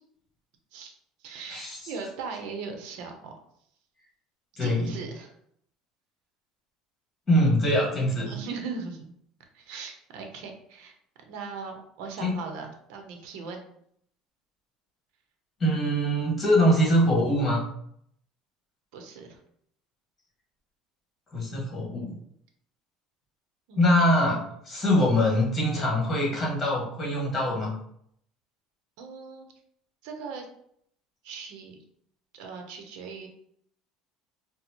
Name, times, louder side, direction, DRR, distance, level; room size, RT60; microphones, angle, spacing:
voice 1, 0.7-3.3 4.6-5.3 8.3-9.0 9.5-10.9 11.2-13.6 18.9-19.4 23.7-23.9 29.0-29.5 30.0-30.5 31.2-31.8 32.3-33.3, right 5 dB, 75° right, 3 dB, 0.6 m, -39 dB
voice 2, 4.6-4.9 7.3-8.4 12.2-12.4 15.6-17.6 21.3-22.2 23.7-27.7, equal, 20° left, -4 dB, 1.4 m, -23 dB
4.1 x 2.0 x 2.9 m, 0.69 s
cardioid pair, 135°, 0 cm